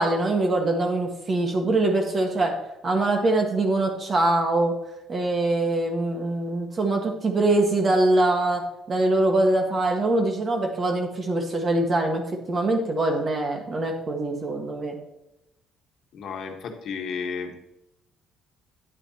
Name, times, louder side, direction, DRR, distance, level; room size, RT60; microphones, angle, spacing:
voice 1, 0.0-2.6 2.8-4.7 5.1-12.2 12.5-15.0, right 2 dB, 35° right, 2 dB, 1.6 m, -23 dB
voice 2, 16.1-17.6, left 5 dB, 60° left, 4 dB, 1.5 m, -33 dB
9.6 x 9.5 x 2.9 m, 0.87 s
cardioid pair, 125°, 0 cm